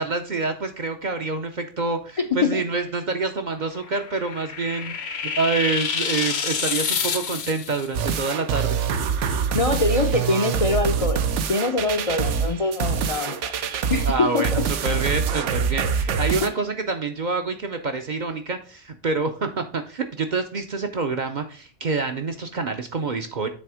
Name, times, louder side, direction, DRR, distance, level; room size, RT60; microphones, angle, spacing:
voice 1, 0.0-5.0 5.2-8.8 14.0-23.5, right 4 dB, 50° right, 6 dB, 0.6 m, -27 dB
sound 1, 3.7-7.9, left 6 dB, 65° left, 1.0 m, -28 dB
sound 2, 7.9-16.5, right 7 dB, 80° right, 1.0 m, -25 dB
voice 2, 9.5-11.2 11.5-13.5 13.9-14.6, left 3 dB, 45° left, 6 dB, 0.5 m, -23 dB
7.7 x 3.4 x 4.8 m, 0.40 s
omnidirectional pair, 1.2 m